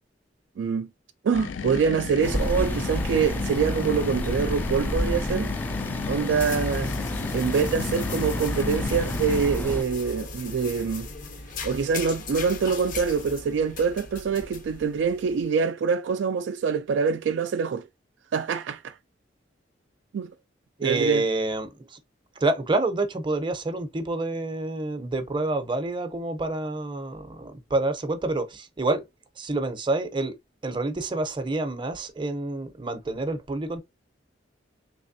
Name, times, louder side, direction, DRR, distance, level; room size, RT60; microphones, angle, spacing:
voice 1, 0.6-0.9 1.2-5.5 6.1-6.9 7.3-11.1 11.6-17.9 18.3-18.9 20.1-20.3 20.8-21.3, right 6 dB, 70° right, 0.3 m, -25 dB
sound 1, 1.3-9.5, left 5 dB, 85° left, 0.4 m, -34 dB
sound 2, 2.2-9.8, left 1 dB, 10° left, 0.3 m, -30 dB
sound 3, 5.5-15.5, left 4 dB, 45° left, 0.6 m, -38 dB
voice 2, 20.8-22.0 22.4-29.0 29.4-30.3 30.6-33.8, right 2 dB, 25° right, 0.6 m, -28 dB
3.3 x 3.1 x 2.6 m
head